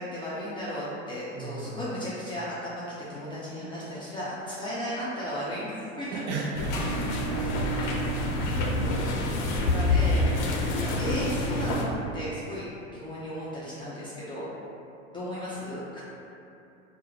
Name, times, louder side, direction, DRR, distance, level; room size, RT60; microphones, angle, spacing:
voice 1, 0.0-2.8 3.1-6.2 8.3-8.9 9.2-10.2 10.6-14.5 15.1-16.0, equal, 15° left, -9 dB, 0.3 m, -35 dB
voice 2, 1.3-1.8 6.1-7.4, right 3 dB, 50° right, -1 dB, 0.6 m, -35 dB
sound 1, 6.5-11.8, left 1 dB, 60° left, 0.6 m, -27 dB
2.5 x 2.0 x 3.8 m, 2.7 s
hypercardioid pair, 95°, 38 cm